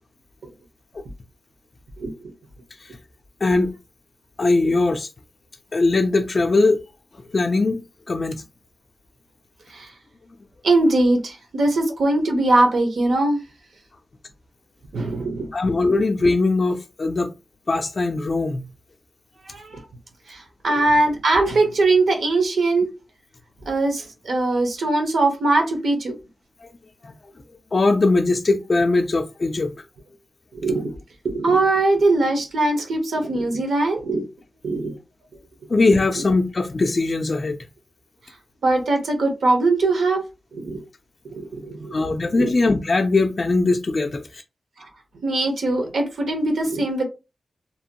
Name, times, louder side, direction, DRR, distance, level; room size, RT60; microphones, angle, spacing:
voice 1, 3.4-3.7 4.4-5.1 5.7-6.8 7.3-7.8 8.1-8.4 15.5-17.3 17.7-18.7 27.0-27.1 27.7-29.7 35.7-37.6 41.9-44.4, left 3 dB, 40° left, 0.3 m, -20 dB
voice 2, 10.6-13.4 14.9-15.5 19.5-19.8 20.3-22.9 23.7-26.2 30.5-30.9 31.2-34.3 34.6-35.0 38.6-40.2 40.5-40.8 41.3-41.9 42.4-42.5 44.8-44.9 45.2-47.0, right 2 dB, 80° right, 0.8 m, -21 dB
2.8 x 2.1 x 2.8 m
wide cardioid pair, 100°, 0 cm